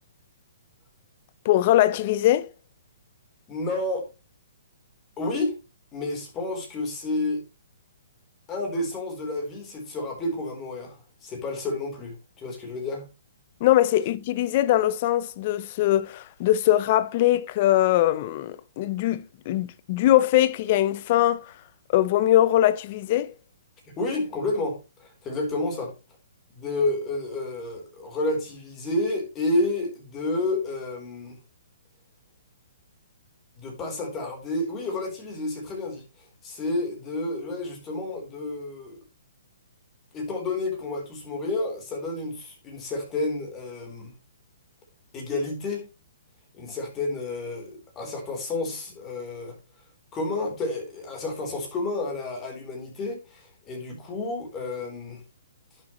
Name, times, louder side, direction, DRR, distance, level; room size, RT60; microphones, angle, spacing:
voice 1, 1.4-2.5 13.6-21.5 21.9-23.3, left 13 dB, 40° left, 0.7 m, -21 dB
voice 2, 3.5-4.1 5.2-5.6 5.9-7.4 8.5-11.0 11.2-13.0 24.0-25.9 26.5-31.4 33.6-39.0 40.1-44.1 45.1-45.8 46.5-49.6 50.1-55.2, left 2 dB, 20° left, 3.8 m, -30 dB
11.5 x 7.5 x 3.1 m
hypercardioid pair, 150°, 0 cm